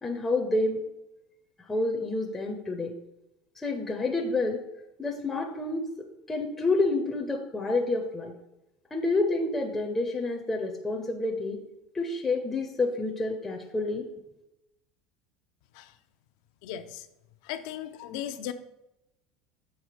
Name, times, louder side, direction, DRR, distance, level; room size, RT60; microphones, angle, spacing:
voice 1, 0.0-0.8 1.7-2.9 3.6-4.6 5.0-5.9 6.3-8.3 8.9-11.6 11.9-14.0, left 2 dB, 10° left, 1 dB, 0.5 m, -28 dB
voice 2, 16.6-17.1 17.4-18.5, left 10 dB, 70° left, 10 dB, 0.5 m, -37 dB
6.6 x 3.5 x 4.7 m, 0.89 s
cardioid pair, 160°, 3 cm